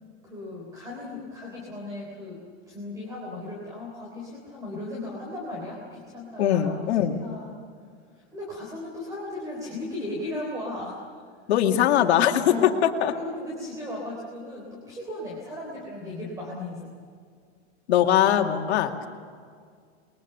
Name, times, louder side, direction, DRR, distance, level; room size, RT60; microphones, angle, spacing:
voice 1, 0.2-7.5 8.1-11.0 12.5-12.7 13.1-17.0, left 1 dB, 10° right, -2 dB, 3.6 m, -36 dB
voice 2, 6.4-7.1 11.5-12.5 13.0-13.1 17.9-19.1, left 10 dB, 70° left, 4 dB, 2.3 m, -21 dB
27.5 x 22.0 x 6.9 m, 2.1 s
supercardioid pair, 180°, 34 cm